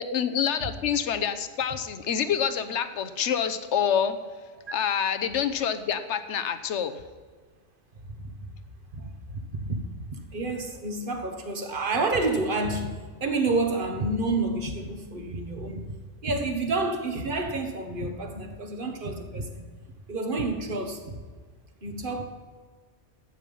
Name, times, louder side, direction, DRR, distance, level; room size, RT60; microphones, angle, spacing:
voice 1, 0.0-4.2 4.7-7.0, left 8 dB, 70° left, 11 dB, 1.1 m, -27 dB
voice 2, 8.9-9.8 10.1-15.8 16.2-19.7 20.1-21.2 21.8-22.2, right 2 dB, 45° right, 5 dB, 1.5 m, -29 dB
12.5 x 8.9 x 5.4 m, 1.5 s
omnidirectional pair, 1.3 m